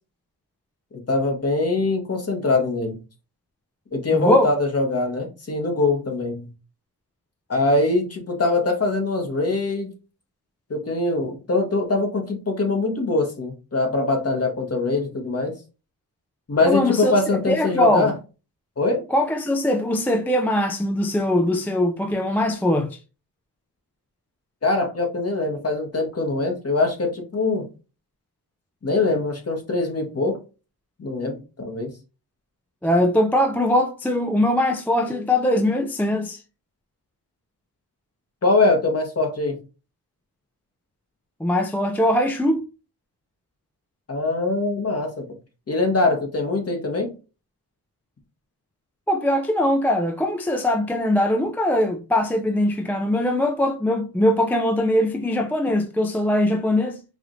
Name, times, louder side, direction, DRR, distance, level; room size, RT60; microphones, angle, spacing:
voice 1, 1.1-3.0 3.9-6.5 7.5-9.9 10.7-15.5 16.5-18.1 18.8-19.0 24.6-27.7 28.8-30.4 31.0-31.9 38.4-39.6 44.1-45.2 45.7-47.1, left 3 dB, 40° left, 1.3 m, -23 dB
voice 2, 4.1-4.5 16.6-18.1 19.1-23.0 32.8-36.4 41.4-42.7 49.1-57.0, left 1 dB, 5° left, 0.4 m, -21 dB
4.8 x 2.5 x 3.0 m
wide cardioid pair, 95°, 39 cm